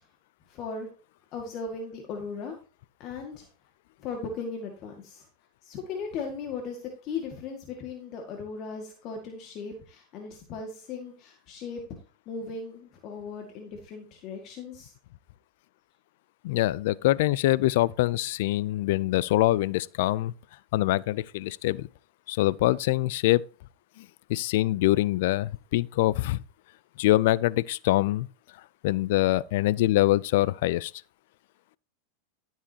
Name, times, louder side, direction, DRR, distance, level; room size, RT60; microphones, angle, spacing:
voice 1, 0.5-0.9 1.3-2.6 3.0-3.5 4.0-5.3 5.6-11.8 12.3-14.9, left 4 dB, 45° left, 2.0 m, -37 dB
voice 2, 16.4-20.3 20.7-21.9 22.3-23.4 24.0-24.1 24.3-26.4 27.0-28.3 28.8-30.9, left 16 dB, 65° left, 0.4 m, -24 dB
13.0 x 7.4 x 2.9 m
hypercardioid pair, 115°, 0 cm